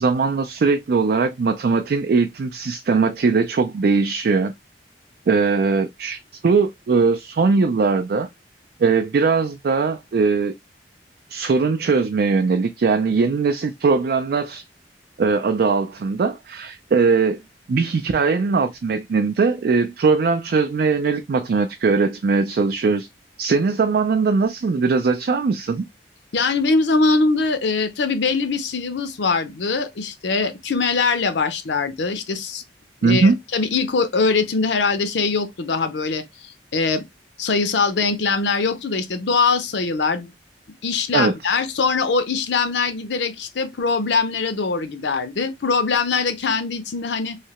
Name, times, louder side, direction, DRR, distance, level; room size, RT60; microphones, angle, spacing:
voice 1, 0.0-4.5 5.3-8.3 8.8-10.5 11.3-14.6 15.2-17.4 17.7-23.1 23.4-25.8 33.0-33.4 41.1-41.5, right 4 dB, 60° right, 0.4 m, -20 dB
voice 2, 26.3-32.6 33.0-37.0 37.4-40.3 40.8-47.4, left 4 dB, 85° left, 0.6 m, -22 dB
3.2 x 2.7 x 2.9 m
head